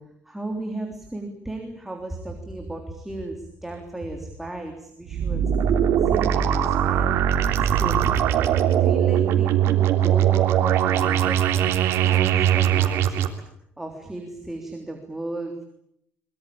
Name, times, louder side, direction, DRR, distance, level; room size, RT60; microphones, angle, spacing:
voice 1, 0.3-5.4 6.0-7.3 7.6-8.1 8.8-11.7 12.0-13.3 13.8-15.6, right 2 dB, 5° right, 2 dB, 3.4 m, -35 dB
sound 1, 5.1-13.3, right 10 dB, 75° right, 3.3 m, -20 dB
23.5 x 23.0 x 8.7 m, 0.72 s
cardioid pair, 165°, 5 cm